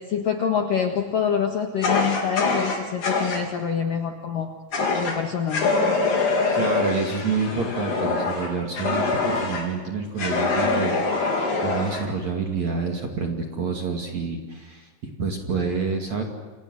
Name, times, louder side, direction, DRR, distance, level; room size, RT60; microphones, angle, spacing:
voice 1, 0.0-4.5 4.9-5.7, left 7 dB, 65° left, 3 dB, 2.4 m, -26 dB
Fire, 1.8-3.4 4.7-5.2 5.5-9.7 10.2-12.0, left 3 dB, 40° left, 5.0 m, -24 dB
voice 2, 6.5-16.2, right 4 dB, 45° right, 2 dB, 2.8 m, -28 dB
29.5 x 26.0 x 6.5 m, 1.4 s
omnidirectional pair, 5.8 m